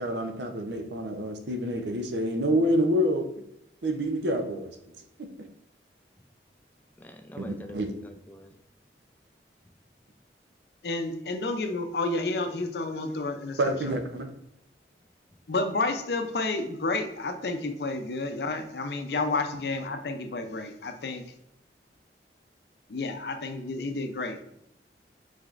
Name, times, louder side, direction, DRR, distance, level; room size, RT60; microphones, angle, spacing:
voice 1, 0.0-3.4 3.8-5.3 7.4-7.9 13.6-14.4, equal, 80° right, 6 dB, 0.7 m, -28 dB
voice 2, 7.0-8.5, equal, 10° left, 6 dB, 0.3 m, -45 dB
voice 3, 10.8-13.7 15.5-21.2 22.9-24.4, left 3 dB, 70° left, 7 dB, 0.5 m, -30 dB
4.9 x 4.2 x 2.5 m, 0.79 s
head